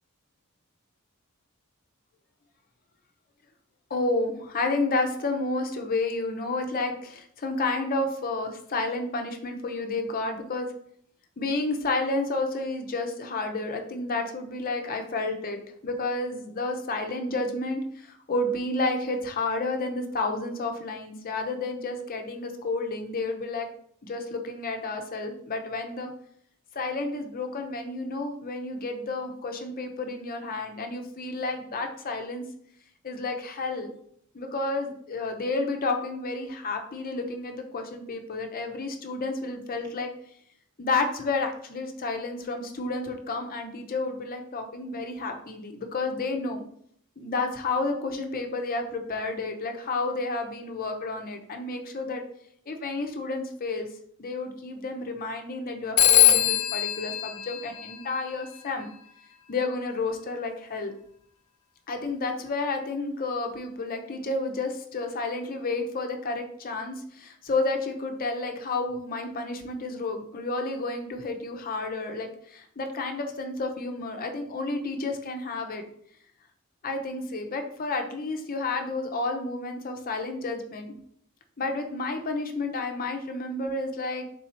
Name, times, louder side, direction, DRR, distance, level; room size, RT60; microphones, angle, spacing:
voice 1, 3.9-10.7 11.4-23.7 24.0-26.1 26.7-32.4 33.0-33.9 34.3-40.1 40.8-46.6 47.2-52.2 52.7-53.9 54.2-58.9 59.5-60.9 61.9-75.8 76.8-80.9 81.6-84.3, left 3 dB, 40° left, 4 dB, 0.6 m, -31 dB
Telephone, 56.0-58.5, left 12 dB, 85° left, 0.4 m, -22 dB
3.7 x 2.7 x 4.2 m, 0.66 s
head